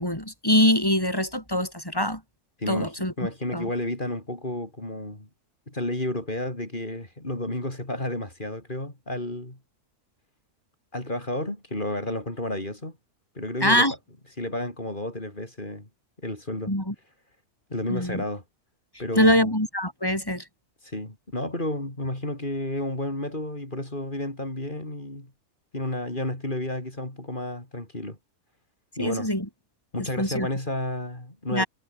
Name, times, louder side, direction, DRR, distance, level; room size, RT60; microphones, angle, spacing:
voice 1, 0.0-2.2 2.7-3.1 3.5-3.7 13.6-13.9 16.7-16.9 17.9-18.2 19.2-20.4 29.0-29.5 30.2-30.5 31.5-31.7, left 1 dB, 15° left, 5.6 m, -23 dB
voice 2, 2.6-2.9 3.2-5.3 5.7-9.6 10.9-13.0 13.4-13.9 14.4-15.9 16.2-16.7 17.7-18.4 19.0-19.5 20.8-25.3 25.7-28.2 29.0-29.3 29.9-31.7, left 1 dB, 30° left, 5.2 m, -31 dB
omnidirectional pair, 1.6 m